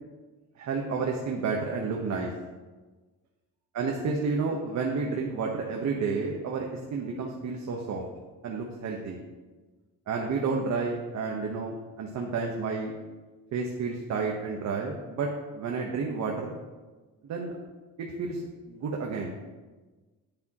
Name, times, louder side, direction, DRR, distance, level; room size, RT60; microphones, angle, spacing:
voice 1, 0.6-2.3 3.7-8.0 8.4-9.2 10.1-12.9 13.5-16.6 17.2-17.5 18.0-18.4 18.7-19.3, right 4 dB, 60° right, 0 dB, 1.2 m, -31 dB
10.5 x 10.0 x 3.0 m, 1.3 s
cardioid pair, 140°, 32 cm